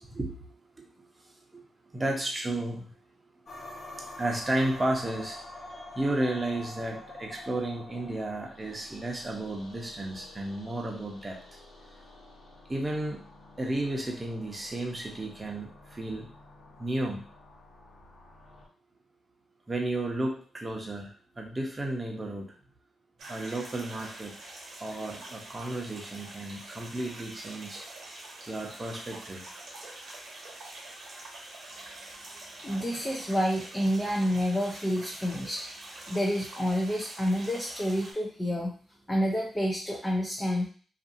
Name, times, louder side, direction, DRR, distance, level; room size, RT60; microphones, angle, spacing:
voice 1, 0.0-0.9 1.5-1.6 1.9-2.9 4.2-5.4 5.7-11.4 12.7-13.2 13.6-16.3 16.8-17.2 19.7-22.5 23.3-24.3 24.8-27.8 28.5-29.4, right 1 dB, 25° right, 0 dB, 0.9 m, -33 dB
sound 1, 3.5-18.7, left 2 dB, 60° left, 1.1 m, -48 dB
sound 2, 23.2-38.1, right 2 dB, 70° right, 1.1 m, -45 dB
voice 2, 32.6-35.6 36.1-38.7 39.1-40.7, equal, 15° left, -2 dB, 0.6 m, -28 dB
2.6 x 2.6 x 2.6 m, 0.43 s
cardioid pair, 60°, 0 cm